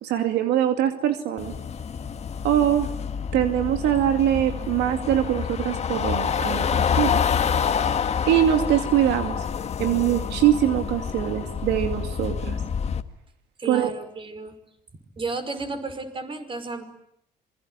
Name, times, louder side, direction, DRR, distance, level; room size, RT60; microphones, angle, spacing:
voice 1, 0.0-1.5 2.4-2.9 3.3-7.2 8.3-9.4 9.8-12.6 13.7-13.9, right 11 dB, 85° right, 7 dB, 2.4 m, -23 dB
sound 1, 1.4-13.0, left 7 dB, 40° left, 1.7 m, -27 dB
voice 2, 13.6-14.5 15.2-16.8, right 3 dB, 30° right, 9 dB, 5.4 m, -32 dB
27.0 x 22.5 x 9.7 m, 0.72 s
cardioid pair, 110°, 17 cm